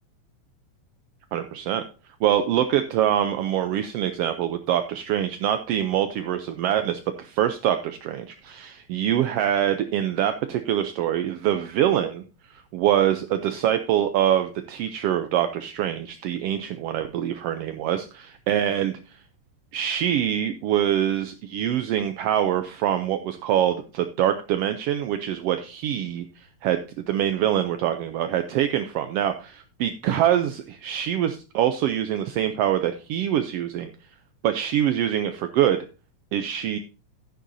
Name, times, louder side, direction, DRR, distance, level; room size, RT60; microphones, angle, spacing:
voice 1, 1.3-1.8 2.2-12.2 12.5-19.0 19.7-26.2 26.6-33.9 34.4-35.8 36.3-36.8, right 11 dB, 80° right, 8 dB, 1.4 m, -24 dB
11.0 x 10.0 x 2.6 m, 0.32 s
omnidirectional pair, 3.4 m